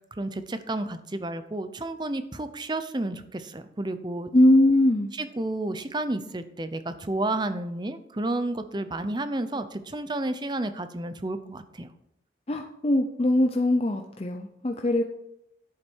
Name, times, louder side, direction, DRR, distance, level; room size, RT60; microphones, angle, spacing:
voice 1, 0.2-4.3 5.2-11.9, right 2 dB, 25° right, 11 dB, 0.7 m, -31 dB
voice 2, 4.3-5.1 12.5-15.0, left 1 dB, 35° left, 3 dB, 0.6 m, -21 dB
10.5 x 8.4 x 4.6 m, 0.81 s
head